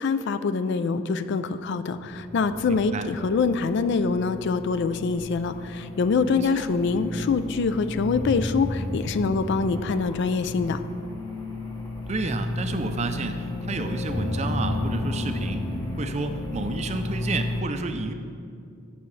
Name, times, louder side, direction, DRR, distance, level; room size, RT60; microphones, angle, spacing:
voice 1, 0.0-10.8, left 4 dB, 55° left, 12 dB, 0.3 m, -25 dB
sound 1, 1.9-17.6, left 2 dB, 20° left, 0.9 m, -33 dB
voice 2, 2.6-3.1 6.3-6.6 12.1-15.7 16.0-18.1, right 3 dB, 30° right, 7 dB, 0.5 m, -30 dB
13.0 x 6.7 x 3.2 m, 2.4 s
head